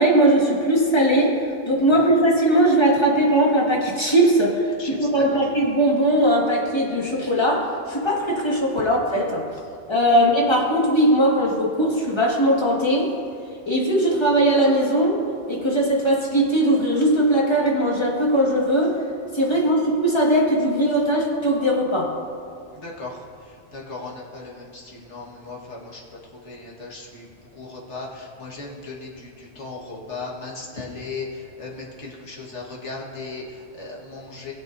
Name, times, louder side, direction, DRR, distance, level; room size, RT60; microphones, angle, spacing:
voice 1, 0.0-9.4 9.9-13.1 13.7-15.2 15.5-19.0 19.3-22.1, right 1 dB, 20° left, -3 dB, 1.8 m, -19 dB
voice 2, 4.8-5.4 10.1-10.2 19.5-19.6 22.7-26.0 26.4-27.3 27.5-34.5, left 3 dB, 70° left, -2 dB, 1.9 m, -37 dB
20.5 x 7.5 x 2.6 m, 2.3 s
omnidirectional pair, 1.3 m